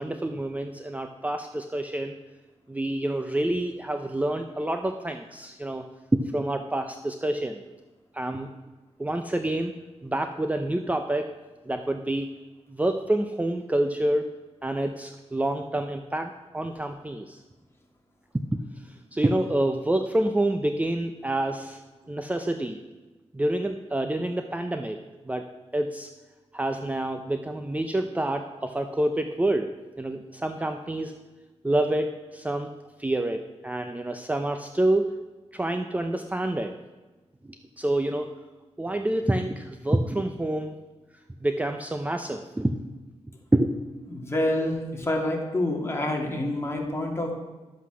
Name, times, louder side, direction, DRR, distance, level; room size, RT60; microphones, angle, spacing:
voice 1, 0.0-2.2 2.7-5.8 6.1-7.6 8.1-8.5 9.0-9.7 10.0-11.3 11.7-12.3 12.7-14.2 14.6-17.4 18.3-18.6 19.1-21.8 22.1-22.8 23.3-25.0 25.3-25.5 25.7-26.1 26.5-29.7 30.0-31.1 31.6-32.7 33.0-35.1 35.5-36.7 37.8-38.3 38.8-40.8 41.4-42.7 43.5-43.7, right 1 dB, 15° right, 6 dB, 0.6 m, -27 dB
voice 2, 44.1-47.3, left 1 dB, 25° left, 0 dB, 2.4 m, -27 dB
11.5 x 8.0 x 6.2 m, 1.2 s
wide cardioid pair, 110°, 11 cm